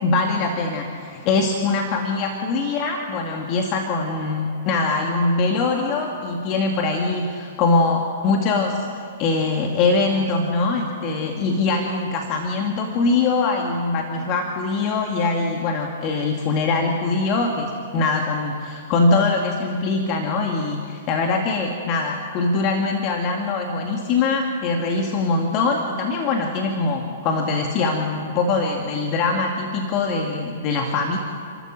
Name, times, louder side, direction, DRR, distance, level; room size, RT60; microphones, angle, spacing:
voice 1, 0.0-31.2, left 3 dB, 40° left, 2 dB, 2.2 m, -22 dB
29.5 x 13.0 x 7.6 m, 2.2 s
hypercardioid pair, 115°, 0 cm